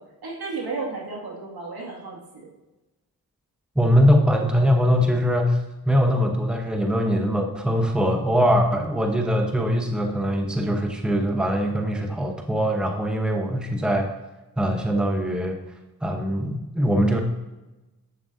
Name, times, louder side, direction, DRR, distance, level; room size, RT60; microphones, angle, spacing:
voice 1, 0.0-2.5, right 3 dB, 70° right, -2 dB, 2.3 m, -33 dB
voice 2, 3.7-5.6 5.8-14.1 14.6-15.6 16.0-17.2, equal, ahead, 3 dB, 1.1 m, -22 dB
7.6 x 7.4 x 2.7 m, 1.1 s
cardioid pair, 45°, 39 cm